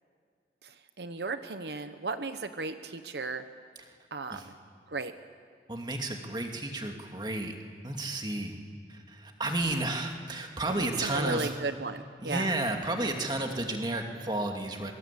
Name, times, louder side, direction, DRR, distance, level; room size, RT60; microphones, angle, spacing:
voice 1, 1.0-3.4 4.1-4.4 4.9-5.1 10.8-12.5, right 3 dB, 70° right, 9 dB, 1.0 m, -35 dB
voice 2, 5.7-7.5 7.8-8.6 8.9-11.5 12.2-14.9, right 2 dB, 25° right, 3 dB, 2.4 m, -32 dB
28.0 x 24.0 x 8.5 m, 2.1 s
head